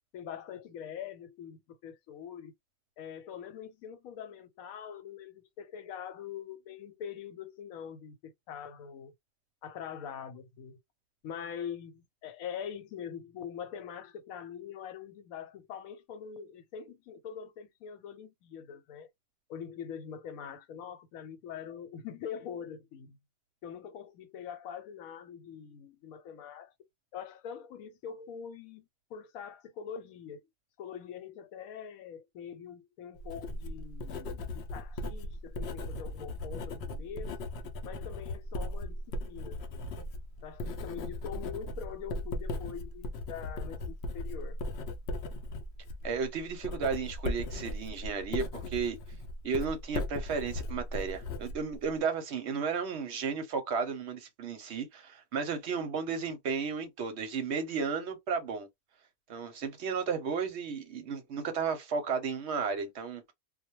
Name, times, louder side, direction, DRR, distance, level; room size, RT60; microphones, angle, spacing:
voice 1, 0.1-2.5 3.0-9.1 9.6-10.8 11.2-19.1 19.5-23.2 23.6-26.7 27.1-30.4 30.8-37.3 37.8-39.9 40.4-44.6, left 8 dB, 85° left, 1.1 m, -43 dB
Writing, 33.2-52.0, left 1 dB, 65° left, 0.7 m, -38 dB
voice 2, 46.0-49.0 49.4-58.7 59.3-63.3, right 5 dB, 60° right, 0.8 m, -33 dB
2.2 x 2.1 x 2.9 m
omnidirectional pair, 1.4 m